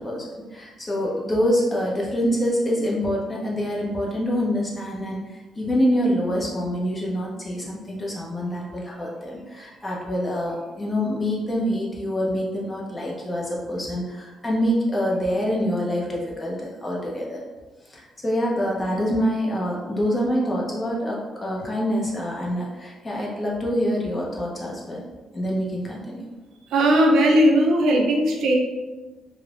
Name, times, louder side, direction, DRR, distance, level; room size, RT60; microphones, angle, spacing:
voice 1, 0.0-17.4 17.8-25.0 25.3-26.2, equal, 20° left, -4 dB, 0.7 m, -26 dB
voice 2, 26.7-28.5, right 1 dB, 75° right, 0 dB, 0.5 m, -18 dB
3.0 x 2.1 x 2.4 m, 1.2 s
cardioid pair, 90°, 0 cm